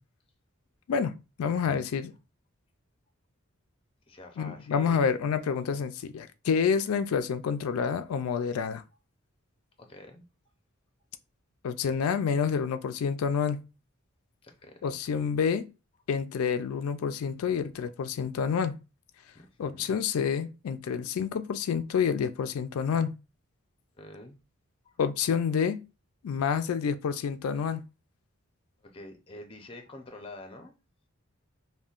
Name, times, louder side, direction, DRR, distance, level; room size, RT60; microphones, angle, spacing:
voice 1, 1.4-2.1 4.4-8.8 11.6-13.6 14.8-15.7 16.1-18.8 19.6-23.2 25.0-25.8 26.2-27.8, left 6 dB, 90° left, 0.3 m, -28 dB
voice 2, 4.1-5.1 9.8-10.3 14.4-15.0 19.3-20.0 24.0-24.4 24.8-25.0 28.8-30.7, left 2 dB, 25° left, 0.6 m, -47 dB
5.4 x 2.2 x 2.4 m
head